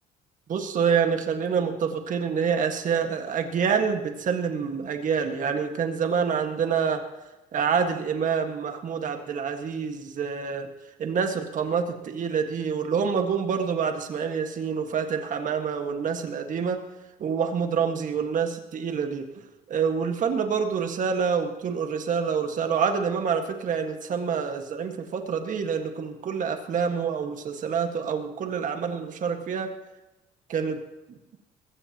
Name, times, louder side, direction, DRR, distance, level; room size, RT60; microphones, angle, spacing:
voice 1, 0.5-7.0 7.5-10.7 11.0-16.8 17.2-19.2 19.7-29.7 30.5-30.8 31.1-31.2, right 6 dB, 50° right, 5 dB, 1.7 m, -27 dB
21.0 x 16.0 x 3.0 m, 1.0 s
cardioid pair, 110°, 17 cm